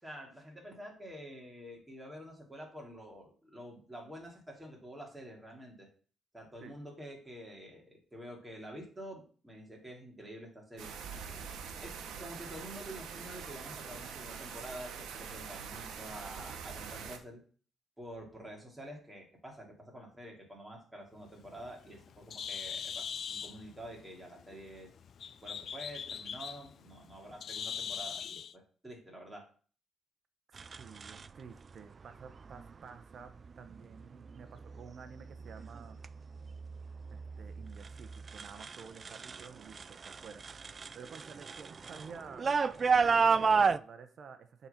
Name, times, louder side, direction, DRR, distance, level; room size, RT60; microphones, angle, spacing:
voice 1, 0.0-5.9 6.3-10.9 11.8-17.4 18.0-24.9 25.4-29.4, equal, 10° right, -1 dB, 2.7 m, -48 dB
sound 1, 10.8-17.2, right 6 dB, 80° right, 1.0 m, -44 dB
Bird, 21.2-28.5, left 7 dB, 55° left, 0.3 m, -42 dB
voice 2, 30.5-36.0 37.1-42.4 43.0-44.7, right 6 dB, 55° right, 8 dB, 0.7 m, -51 dB
sound 2, 30.6-31.3 32.4-32.7 33.3-33.7 34.3-34.8 35.2-39.5 39.7-43.8, right 5 dB, 40° right, 0.3 m, -31 dB
7.0 x 4.0 x 5.7 m, 0.42 s
cardioid pair, 90°, 0 cm